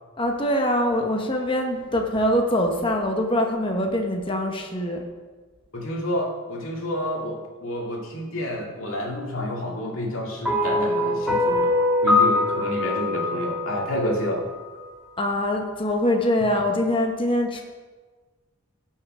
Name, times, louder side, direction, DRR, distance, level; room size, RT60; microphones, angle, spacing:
voice 1, 0.2-5.0 15.2-17.6, left 1 dB, 25° left, 2 dB, 1.0 m, -23 dB
voice 2, 5.7-14.4, left 1 dB, 80° left, -2 dB, 2.3 m, -29 dB
sound 1, 10.4-14.8, left 2 dB, 5° right, 1.8 m, -23 dB
17.0 x 5.7 x 4.9 m, 1.4 s
head